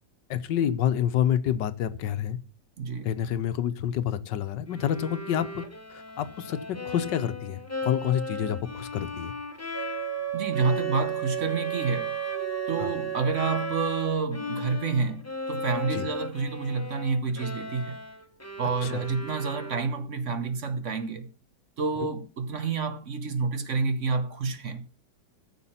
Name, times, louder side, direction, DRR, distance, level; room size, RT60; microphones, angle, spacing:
voice 1, 0.3-2.4 3.0-5.6 5.9-9.3 12.8-12.9 15.9-16.1 18.8-19.0 22.0-22.1, left 10 dB, 90° left, 1.6 m, -28 dB
voice 2, 2.8-3.1 10.3-12.2 12.7-18.0 18.6-21.3 21.8-24.8, right 4 dB, 50° right, 1.2 m, -29 dB
Bowed string instrument, 4.7-14.1 14.3-20.1, left 2 dB, 10° left, 0.9 m, -37 dB
Wind instrument woodwind instrument, 9.7-14.2, right 12 dB, 10° right, 1.5 m, -32 dB
14.0 x 6.8 x 5.7 m
omnidirectional pair, 1.9 m